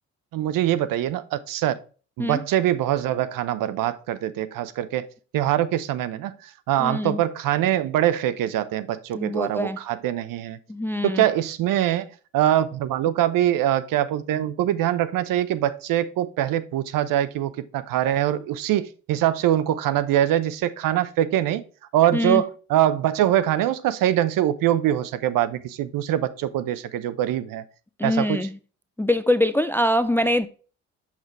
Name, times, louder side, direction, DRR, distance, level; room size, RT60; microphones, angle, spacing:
voice 1, 0.3-1.8 2.2-5.1 5.3-10.6 11.0-21.6 21.9-27.6 28.0-28.5, right 12 dB, 60° right, 0.7 m, -23 dB
voice 2, 6.8-7.2 9.1-9.8 10.7-11.3 22.1-22.4 28.0-28.6 29.0-30.5, left 1 dB, 5° left, 0.4 m, -23 dB
6.3 x 5.8 x 3.1 m
hypercardioid pair, 55°, 37 cm